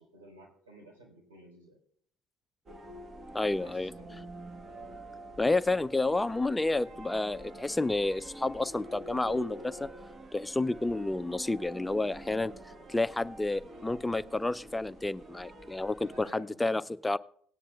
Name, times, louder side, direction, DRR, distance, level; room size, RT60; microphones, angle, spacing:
voice 1, 0.0-1.8 3.6-4.3 16.1-16.5, right 1 dB, 80° right, -1 dB, 3.7 m, -54 dB
sound 1, 2.7-16.2, right 1 dB, 35° right, 1.3 m, -47 dB
voice 2, 3.3-4.2 5.4-9.9 10.3-12.5 12.9-17.2, left 2 dB, 15° left, 16 dB, 0.3 m, -30 dB
18.0 x 10.0 x 2.3 m, 0.63 s
figure-of-eight pair, 55°, 0 cm